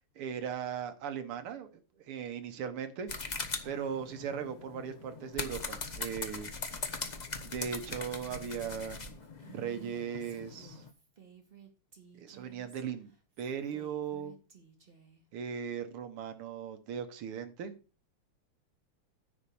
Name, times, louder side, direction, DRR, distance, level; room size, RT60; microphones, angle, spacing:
voice 1, 0.2-1.7 2.1-3.1 3.6-6.5 7.4-9.1 9.5-10.8 12.1-13.1 13.4-14.3 15.3-17.7, right 7 dB, 80° right, 2.0 m, -38 dB
sound 1, 3.1-10.9, left 4 dB, 50° left, 0.5 m, -41 dB
Female speech woman speaking, 8.2-15.2, right 8 dB, 25° right, 1.9 m, -56 dB
10.0 x 4.4 x 6.9 m
omnidirectional pair, 2.4 m